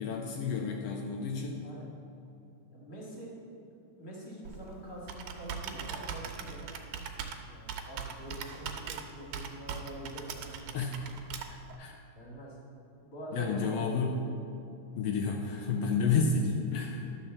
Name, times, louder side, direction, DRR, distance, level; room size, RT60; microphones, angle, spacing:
voice 1, 0.0-1.6 10.7-11.1 11.8-12.0 13.3-14.2 15.0-17.1, left 4 dB, 80° left, 1 dB, 1.4 m, -30 dB
voice 2, 2.7-3.3 4.0-6.7 7.5-10.8 12.1-12.6 13.0-14.3 15.9-16.2, right 1 dB, 30° left, -4 dB, 2.1 m, -45 dB
Computer keyboard, 4.4-11.8, right 7 dB, 85° right, 2.2 m, -41 dB
12.0 x 4.4 x 7.1 m, 2.6 s
omnidirectional pair, 3.5 m